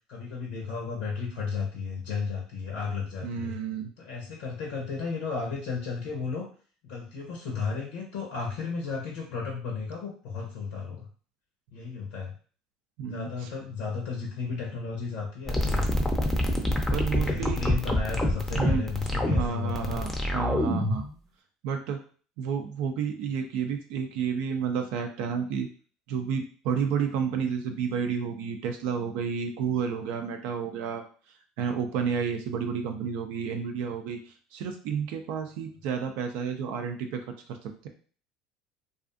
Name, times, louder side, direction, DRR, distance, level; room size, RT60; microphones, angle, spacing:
voice 1, 0.1-3.5 4.0-6.5 6.8-11.1 11.7-12.3 13.1-16.1 17.2-20.0, left 5 dB, 75° left, -1 dB, 0.7 m, -34 dB
voice 2, 3.2-3.9 13.0-13.3 16.9-17.6 18.5-18.8 19.3-21.1 21.6-22.0 22.4-25.7 26.1-31.0 31.6-37.9, right 6 dB, 70° right, 5 dB, 0.4 m, -31 dB
sound 1, 15.5-21.1, left 1 dB, 10° left, 0.5 m, -26 dB
2.5 x 2.4 x 2.4 m, 0.41 s
hypercardioid pair, 85°, 3 cm